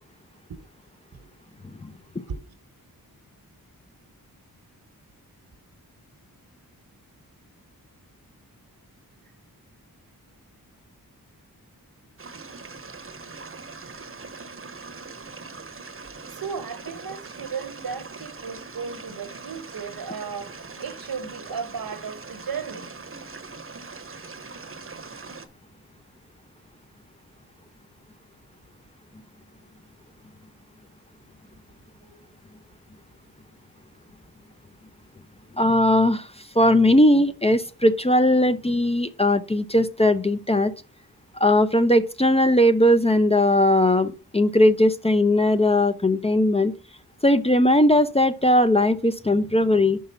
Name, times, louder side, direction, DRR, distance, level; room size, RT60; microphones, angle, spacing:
sound 1, 12.2-25.5, right 4 dB, 35° right, 0.9 m, -41 dB
voice 1, 16.3-22.9 32.0-32.3, right 6 dB, 75° right, 1.1 m, -35 dB
voice 2, 35.6-36.3 36.5-40.7 41.4-46.7 47.2-50.0, left 1 dB, 15° left, 0.5 m, -19 dB
5.5 x 4.9 x 5.5 m
wide cardioid pair, 80°, 36 cm